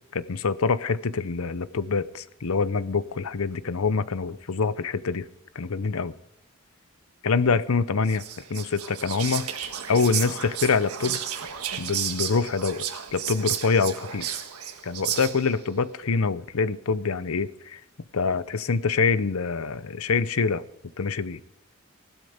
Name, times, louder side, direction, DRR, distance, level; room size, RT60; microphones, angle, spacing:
voice 1, 0.1-5.3 5.5-6.1 7.2-8.2 8.5-9.5 9.9-11.2 11.8-14.4 14.8-17.8 18.1-20.6 21.0-21.4, left 4 dB, 75° left, 16 dB, 0.7 m, -25 dB
Whispering, 8.0-15.6, right 9 dB, 90° right, 1.5 m, -33 dB
16.0 x 12.0 x 5.0 m, 0.87 s
head